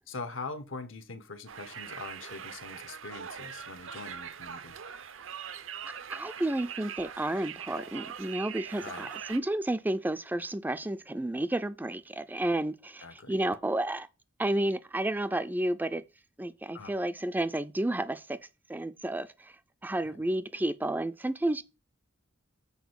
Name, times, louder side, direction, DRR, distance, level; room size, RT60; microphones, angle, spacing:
voice 1, 0.1-4.8 8.8-9.1 13.0-13.4 16.7-16.9 20.1-20.2, left 3 dB, 75° left, 1.0 m, -42 dB
Conversation, 1.5-9.4, right 8 dB, 75° right, 0.7 m, -42 dB
voice 2, 6.1-14.1 14.4-16.0 16.4-18.4 18.7-19.5 19.8-21.6, right 1 dB, 10° right, 0.4 m, -31 dB
7.1 x 4.3 x 6.2 m
head